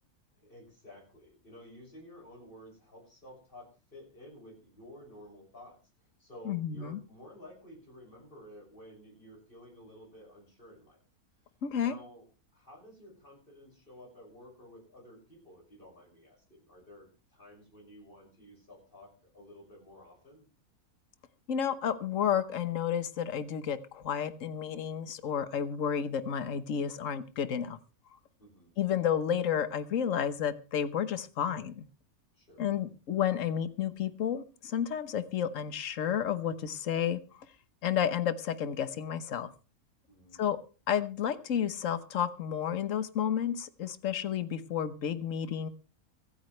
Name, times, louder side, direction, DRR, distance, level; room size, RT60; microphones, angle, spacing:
voice 1, 0.4-11.0 11.8-12.3 12.5-20.5 28.4-28.7 32.3-32.8 40.1-40.5, left 1 dB, 35° left, 0 dB, 6.9 m, -53 dB
voice 2, 6.4-7.0 11.6-11.9 21.5-27.8 28.8-31.8 32.6-37.2 37.8-39.5 40.4-40.6 40.9-45.7, left 8 dB, 60° left, 11 dB, 1.4 m, -31 dB
25.0 x 9.4 x 3.3 m, 0.34 s
omnidirectional pair, 1.6 m